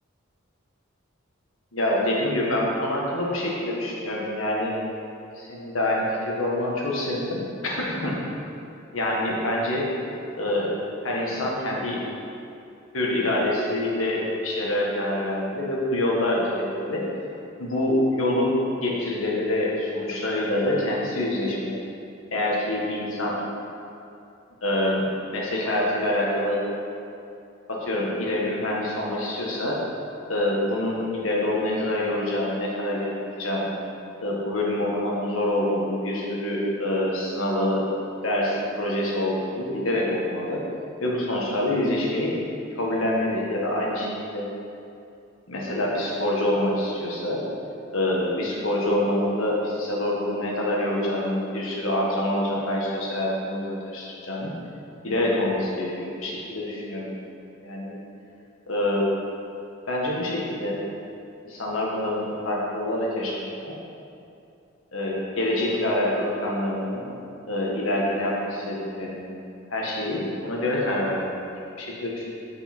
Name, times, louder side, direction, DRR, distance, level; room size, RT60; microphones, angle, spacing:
voice 1, 1.7-4.7 5.3-8.1 8.9-9.9 10.4-10.7 11.0-12.0 12.9-17.0 17.6-21.8 22.3-23.4 24.6-25.0 25.3-26.6 27.7-29.8 30.3-33.1 33.4-33.7 34.2-37.9 38.2-40.6 41.0-42.4 42.8-44.4 45.5-47.4 47.9-54.5 55.0-57.1 57.6-58.0 58.7-59.1 59.9-60.8 61.4-63.7 64.9-67.0 67.5-69.4 69.7-71.5 71.8-72.2, left 1 dB, 80° left, -3 dB, 1.6 m, -26 dB
8.4 x 5.4 x 4.4 m, 2.6 s
head